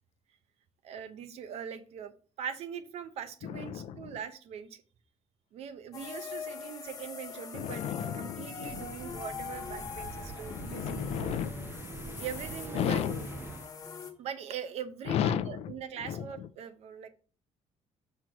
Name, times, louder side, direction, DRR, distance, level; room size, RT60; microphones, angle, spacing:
voice 1, 0.8-4.8 5.5-7.8 8.2-11.4 12.2-13.3 14.2-17.1, right 8 dB, 60° right, 11 dB, 0.9 m, -41 dB
voice 2, 3.4-4.2 7.5-9.2 10.5-11.8 12.7-13.3 15.0-16.5, left 10 dB, 60° left, 13 dB, 0.6 m, -34 dB
sound 1, 5.9-14.1, left 6 dB, 30° left, 1.1 m, -43 dB
sound 2, 8.7-13.7, right 4 dB, 20° right, 0.3 m, -43 dB
5.9 x 4.6 x 6.1 m, 0.40 s
cardioid pair, 180°, 12 cm